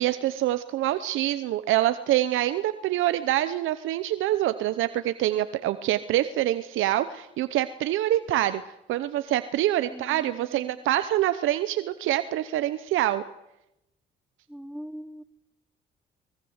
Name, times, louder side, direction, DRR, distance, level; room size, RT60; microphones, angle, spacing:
voice 1, 0.0-8.6 8.9-13.2, right 13 dB, 85° right, 12 dB, 0.8 m, -25 dB
voice 2, 9.9-10.8 14.5-15.2, equal, ahead, 14 dB, 1.1 m, -42 dB
24.5 x 20.0 x 8.0 m, 0.91 s
cardioid pair, 90°, 20 cm